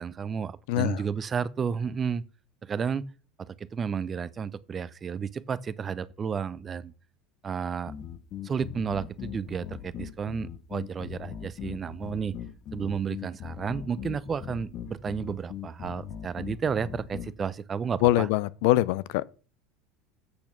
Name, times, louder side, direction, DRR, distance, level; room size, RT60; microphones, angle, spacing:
voice 1, 0.0-2.2 2.6-3.1 3.4-6.9 7.4-7.9 8.4-12.4 12.7-18.3, right 6 dB, 30° right, 0.7 m, -32 dB
voice 2, 0.7-1.0 18.0-19.3, left 16 dB, 70° left, 0.5 m, -23 dB
sound 1, 7.9-17.3, left 9 dB, 50° left, 1.2 m, -40 dB
8.5 x 6.7 x 5.9 m
hypercardioid pair, 85°, 0 cm